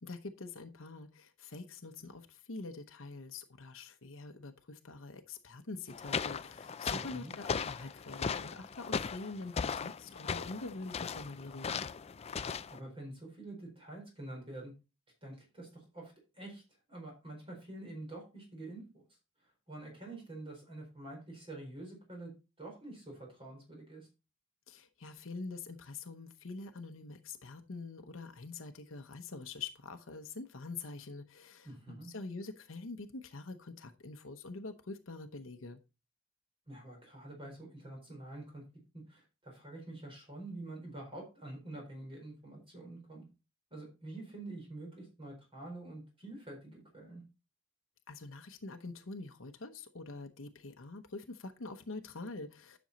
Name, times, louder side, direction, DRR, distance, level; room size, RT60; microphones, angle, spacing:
voice 1, 0.0-11.9 24.7-35.8 48.1-52.8, left 3 dB, 70° left, 0.9 m, -45 dB
sound 1, 5.9-12.8, left 6 dB, 30° left, 0.4 m, -38 dB
voice 2, 6.9-7.3 12.4-14.7 15.2-16.6 16.9-19.0 19.4-22.3 22.6-24.1 31.6-32.1 36.7-38.6 38.9-43.2 43.7-47.2, right 2 dB, 30° right, 4.2 m, -47 dB
10.5 x 6.2 x 4.0 m
head